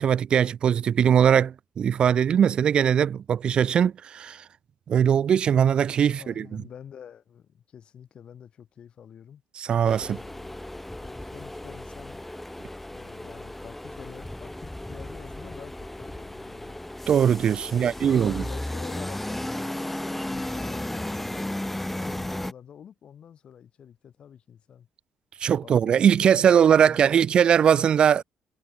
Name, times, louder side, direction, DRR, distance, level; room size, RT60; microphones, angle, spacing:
voice 1, 0.0-4.4 4.9-6.5 9.6-10.2 17.1-18.4 25.4-28.2, right 8 dB, 50° right, 0.3 m, -20 dB
voice 2, 6.1-9.4 10.0-10.6 10.9-12.2 12.9-16.8 17.6-21.5 21.9-24.9 25.6-27.3, left 8 dB, 55° left, 3.8 m, -47 dB
sound 1, 9.8-22.5, left 1 dB, 10° left, 1.5 m, -35 dB
supercardioid pair, 70°, 2 cm